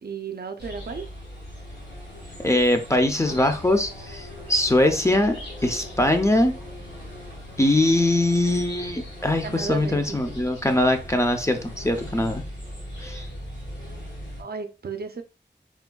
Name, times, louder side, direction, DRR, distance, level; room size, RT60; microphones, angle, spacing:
voice 1, 0.0-1.1 9.4-10.3 14.4-15.2, right 5 dB, 60° right, 0.4 m, -34 dB
sound 1, 0.6-14.4, equal, 85° left, 1.3 m, -39 dB
voice 2, 2.4-5.4 5.6-6.6 7.6-12.4 13.0-13.2, left 1 dB, 15° left, 0.4 m, -22 dB
3.3 x 2.1 x 2.2 m
wide cardioid pair, 40°, 18 cm